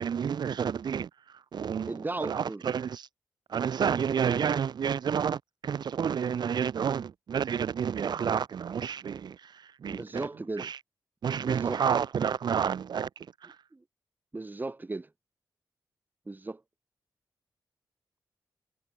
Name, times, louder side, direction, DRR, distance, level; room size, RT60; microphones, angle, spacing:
voice 1, 0.0-3.1 3.5-10.3 10.6-10.8 11.2-13.6, right 7 dB, 70° right, 0.9 m, -30 dB
voice 2, 1.9-2.6 9.9-10.7 11.3-11.8 13.7-13.8 14.3-15.1 16.3-16.6, right 2 dB, 25° right, 1.7 m, -36 dB
cardioid pair, 85°, 7 cm